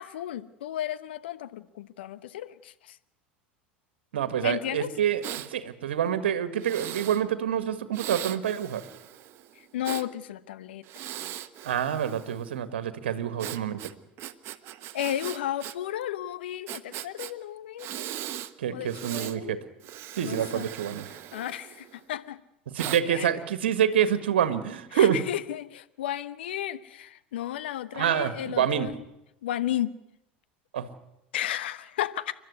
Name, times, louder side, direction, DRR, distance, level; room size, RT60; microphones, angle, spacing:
voice 1, 0.0-3.0 4.4-4.9 9.6-11.0 14.9-17.9 18.7-19.6 20.2-20.7 21.3-22.4 23.1-23.3 24.9-28.9 29.4-30.0 31.3-32.3, left 12 dB, 70° left, 13 dB, 1.0 m, -33 dB
voice 2, 4.1-5.2 5.5-8.8 11.6-13.8 18.6-19.6 20.1-21.0 22.7-25.2 27.9-28.9 30.7-30.9, right 9 dB, 75° right, 12 dB, 1.7 m, -27 dB
Breathing, 5.2-5.5 6.6-7.2 7.9-10.1 10.8-12.5 13.4-15.8 16.0-16.1 16.7-17.3 17.8-18.5 18.9-19.4 19.8-22.0 22.8-23.0, right 12 dB, 45° right, 1.2 m, -39 dB
29.0 x 12.5 x 9.6 m, 0.88 s
figure-of-eight pair, 75°, 6 cm